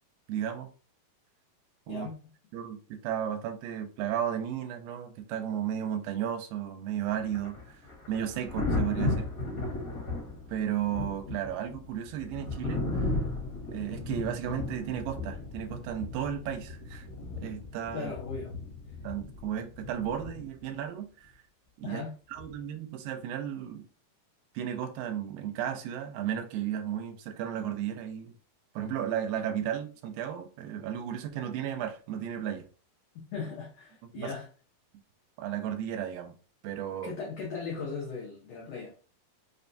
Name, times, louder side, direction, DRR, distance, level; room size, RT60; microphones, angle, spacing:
voice 1, 0.3-0.7 1.9-2.1 2.5-7.8 8.1-9.3 10.5-13.1 13.7-17.1 17.4-18.1 19.0-21.3 21.8-22.0 22.3-23.9 24.6-28.4 28.8-32.7 34.0-34.3 35.4-36.4 36.6-37.1, right 10 dB, 85° right, 2.3 m, -34 dB
Thunder, 7.1-20.7 22.4-22.6, left 2 dB, 65° left, 1.1 m, -35 dB
voice 2, 17.9-18.5 21.8-22.1 33.3-34.5 37.0-39.0, left 5 dB, 90° left, 1.4 m, -38 dB
5.5 x 2.2 x 2.6 m
omnidirectional pair, 4.1 m